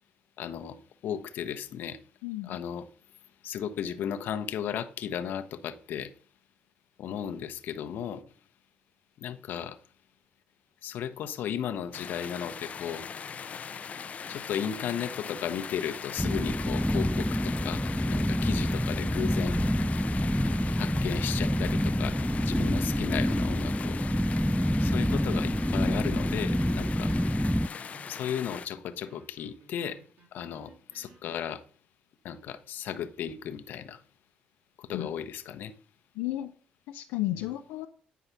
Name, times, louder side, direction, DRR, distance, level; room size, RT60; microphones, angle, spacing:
voice 1, 0.4-2.0 2.4-2.9 3.4-6.1 7.0-8.2 9.2-9.8 10.8-13.1 14.3-19.6 20.8-24.0 24.8-27.1 28.1-30.0 30.3-31.6 32.2-34.0 34.8-35.7 37.3-37.5, left 9 dB, 70° left, 1.0 m, -35 dB
voice 2, 2.2-2.6 34.9-35.1 36.2-36.5 36.9-37.9, left 15 dB, 85° left, 0.6 m, -33 dB
sound 1, 11.9-28.7, left 6 dB, 45° left, 0.6 m, -40 dB
sound 2, 16.2-27.7, equal, ahead, 0.3 m, -27 dB
sound 3, 17.9-18.0 18.4-18.5 18.9-19.0 19.4-31.4, right 3 dB, 65° right, 2.6 m, -58 dB
9.4 x 4.9 x 5.7 m
supercardioid pair, 75°, 3 cm